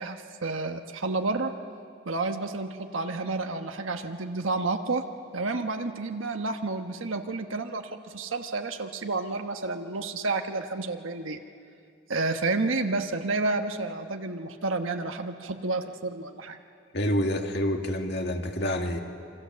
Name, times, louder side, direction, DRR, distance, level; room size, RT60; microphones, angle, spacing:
voice 1, 0.0-1.5 2.1-5.0 5.3-11.4 12.1-16.6, right 3 dB, 80° right, 5 dB, 1.2 m, -30 dB
voice 2, 16.9-19.0, equal, 55° left, 3 dB, 2.2 m, -27 dB
27.5 x 25.5 x 7.5 m, 2.3 s
head